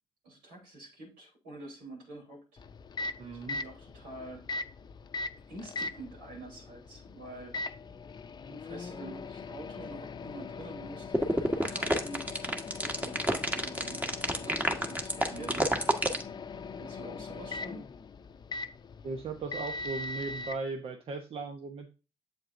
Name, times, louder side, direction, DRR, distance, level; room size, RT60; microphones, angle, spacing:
voice 1, 0.2-2.6 3.3-4.5 5.5-7.5 8.4-12.2 12.8-15.6 16.7-17.9, right 1 dB, 85° right, 0 dB, 3.6 m, -47 dB
Microwave oven, 2.6-20.6, left 3 dB, 40° left, 0.6 m, -41 dB
voice 2, 3.2-3.6 15.3-15.7 19.0-21.9, right 4 dB, 55° right, 4 dB, 1.0 m, -38 dB
sound 1, 11.1-16.2, right 1 dB, 15° right, 1.4 m, -28 dB
7.7 x 7.5 x 2.6 m, 0.32 s
hypercardioid pair, 50°, 11 cm